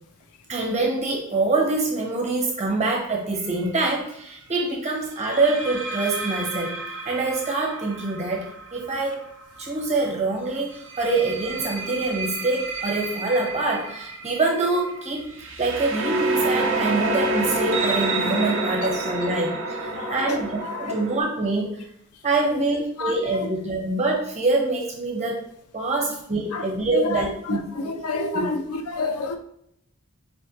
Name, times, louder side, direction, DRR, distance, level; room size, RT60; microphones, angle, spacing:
voice 1, 0.5-6.8 7.0-9.2 9.6-15.3 15.6-19.5 20.1-21.8 22.2-25.4 25.7-28.5, right 3 dB, 30° right, 0 dB, 1.1 m, -25 dB
sound 1, 3.4-3.7 5.2-9.9 10.7-21.2, right 2 dB, 60° right, 0.7 m, -29 dB
voice 2, 19.9-20.9 22.6-22.7 23.0-23.5 26.5-29.4, left 3 dB, 80° left, 6 dB, 0.6 m, -30 dB
4.2 x 3.2 x 3.2 m, 0.73 s
head